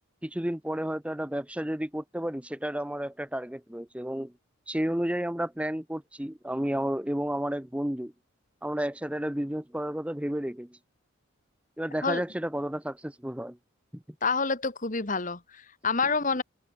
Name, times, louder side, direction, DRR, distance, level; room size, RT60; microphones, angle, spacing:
voice 1, 0.2-4.3 4.7-8.1 8.6-10.8 11.8-13.6 13.9-14.0, equal, 5° right, 0.7 m, -32 dB
voice 2, 14.2-16.4, left 4 dB, 35° left, 1.7 m, -28 dB
head